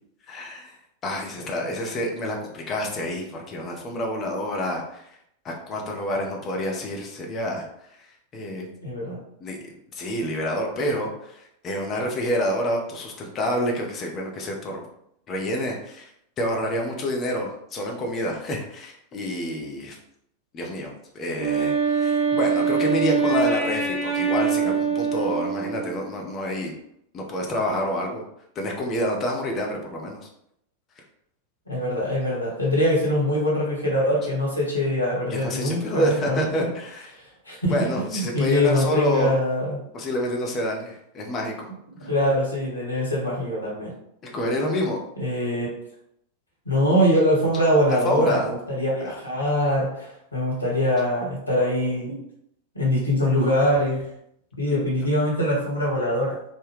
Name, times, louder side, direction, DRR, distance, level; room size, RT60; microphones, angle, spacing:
voice 1, 0.3-0.8 1.0-5.1 5.4-8.7 9.4-9.6 9.9-14.8 15.3-16.1 16.4-20.0 20.5-26.7 27.1-28.2 28.6-30.3 35.3-37.2 37.7-39.3 39.9-41.7 42.0-42.1 44.2-45.0 47.9-48.5 49.0-49.2, equal, 30° left, 0 dB, 0.6 m, -28 dB
voice 2, 8.8-9.2 31.7-36.7 37.1-39.8 42.0-43.9 45.2-45.7 46.6-52.2 52.7-54.0 54.6-56.4, equal, 85° left, -4 dB, 1.2 m, -23 dB
Wind instrument woodwind instrument, 21.3-26.1, right 6 dB, 20° right, 0.9 m, -24 dB
3.3 x 2.1 x 3.4 m, 0.74 s
figure-of-eight pair, 90°, 0 cm